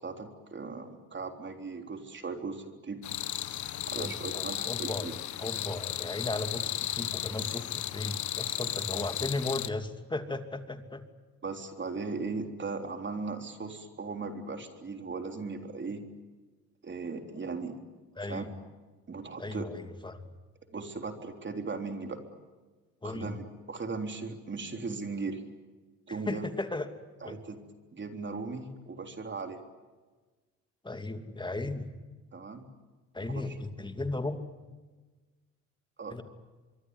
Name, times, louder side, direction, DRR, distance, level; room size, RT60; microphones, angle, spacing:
voice 1, 0.0-3.0 3.9-5.1 11.4-16.0 16.8-17.8 18.3-18.4 19.1-19.7 20.7-22.2 23.0-25.4 26.1-26.5 27.2-27.6 27.9-29.6 32.3-32.6 33.2-33.6 36.0-36.2, right 4 dB, 40° right, 5 dB, 3.7 m, -38 dB
sound 1, 3.0-9.7, left 12 dB, 70° left, 1.3 m, -35 dB
voice 2, 4.0-11.0 18.2-18.5 19.4-20.3 23.0-23.3 26.1-26.9 27.2-27.4 30.8-31.9 33.1-34.4 36.1-36.2, left 2 dB, 15° left, 7 dB, 2.7 m, -36 dB
24.5 x 24.0 x 9.7 m, 1.3 s
cardioid pair, 90°, 30 cm